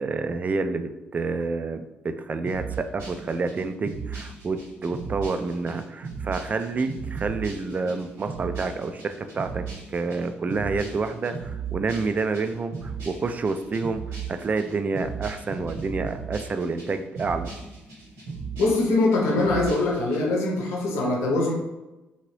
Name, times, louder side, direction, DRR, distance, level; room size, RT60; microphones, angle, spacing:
voice 1, 0.0-1.9 2.2-14.0 14.3-17.5, right 4 dB, 35° right, 8 dB, 0.3 m, -28 dB
sound 1, 2.4-20.2, right 5 dB, 80° right, 1.3 m, -37 dB
voice 2, 18.6-21.5, left 2 dB, 75° left, -1 dB, 0.7 m, -23 dB
2.8 x 2.8 x 3.1 m, 1.0 s
hypercardioid pair, 55°, 5 cm